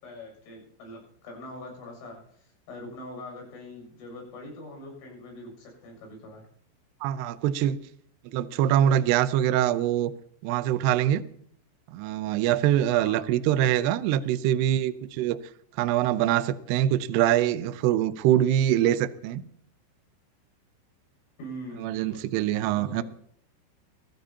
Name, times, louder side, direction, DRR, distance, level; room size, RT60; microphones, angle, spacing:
voice 1, 0.0-6.4 12.9-13.3 21.4-22.3 22.8-23.0, left 1 dB, 90° left, 0 dB, 9.9 m, -43 dB
voice 2, 7.0-7.8 8.3-10.1 10.4-11.2 11.9-15.4 15.8-19.4 21.8-23.0, right 11 dB, 85° right, 12 dB, 2.3 m, -24 dB
23.5 x 16.0 x 2.9 m, 0.64 s
omnidirectional pair, 5.8 m